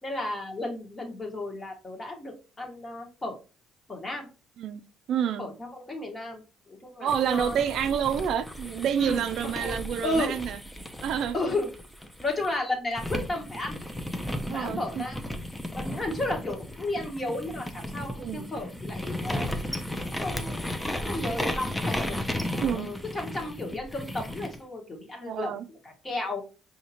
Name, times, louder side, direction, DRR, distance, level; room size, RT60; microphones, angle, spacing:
voice 1, 0.0-3.4 3.9-4.3 5.4-7.6 7.9-8.0 9.0-9.8 10.0-10.4 11.3-11.7 12.2-13.8 14.5-15.2 15.7-19.5 20.1-20.7 21.0-22.2 22.7-26.4, left 2 dB, 25° left, 1.4 m, -33 dB
voice 2, 5.1-5.5 7.0-10.6 11.0-11.3 14.5-15.0 18.2-18.5 22.6-22.9 25.3-25.6, right 8 dB, 65° right, 0.4 m, -28 dB
sound 1, 7.1-12.5 13.0-24.6, left 1 dB, 5° left, 0.6 m, -34 dB
5.0 x 2.8 x 2.8 m
cardioid pair, 90°, 0 cm